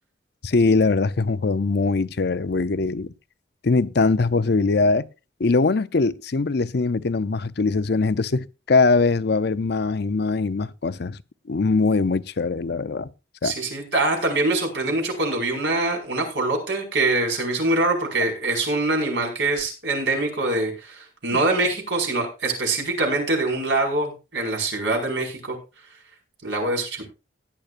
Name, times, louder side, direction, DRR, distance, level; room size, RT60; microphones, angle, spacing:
voice 1, 0.4-3.1 3.6-5.1 5.4-11.2 11.5-13.1 13.4-13.5 21.3-21.4, left 3 dB, 60° left, 0.6 m, -21 dB
voice 2, 13.4-25.6 26.4-27.1, right 2 dB, 70° right, 5.2 m, -24 dB
17.0 x 10.5 x 2.6 m
head